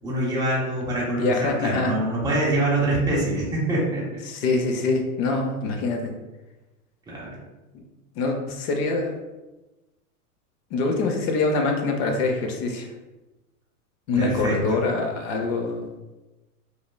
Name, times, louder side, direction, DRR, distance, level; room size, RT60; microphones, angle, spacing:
voice 1, 0.0-4.0 7.1-7.4 14.2-14.8, right 1 dB, 10° right, -6 dB, 0.7 m, -25 dB
voice 2, 1.2-1.9 4.3-6.1 8.2-9.1 10.7-12.9 14.1-15.9, left 3 dB, 40° left, 3 dB, 0.5 m, -24 dB
3.1 x 2.2 x 2.2 m, 1.1 s
hypercardioid pair, 115°, 46 cm